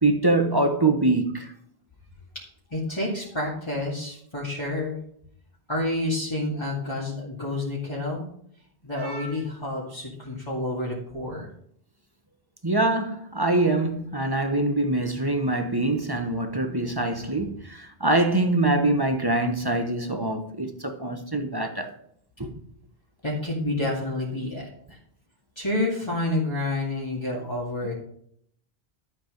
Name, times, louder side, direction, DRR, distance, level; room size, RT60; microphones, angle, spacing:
voice 1, 0.0-1.5 8.9-9.3 12.6-21.9 22.4-22.5, right 2 dB, 25° right, 1.1 m, -24 dB
voice 2, 2.7-5.0 5.7-8.2 8.8-11.5 23.2-25.0 25.6-27.9, left 1 dB, 25° left, 2.5 m, -29 dB
12.5 x 7.0 x 5.2 m
omnidirectional pair, 1.0 m